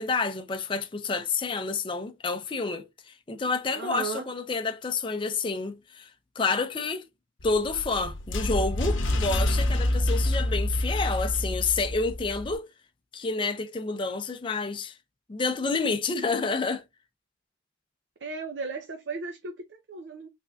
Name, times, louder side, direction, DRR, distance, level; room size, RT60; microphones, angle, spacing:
voice 1, 0.0-6.1 6.4-7.1 7.4-12.7 13.1-14.9 15.3-16.8, left 4 dB, 25° left, 0.5 m, -29 dB
voice 2, 3.7-4.3 18.2-20.3, right 4 dB, 65° right, 0.6 m, -35 dB
sound 1, 7.4-12.6, left 1 dB, 90° left, 0.8 m, -27 dB
3.9 x 3.4 x 2.3 m
head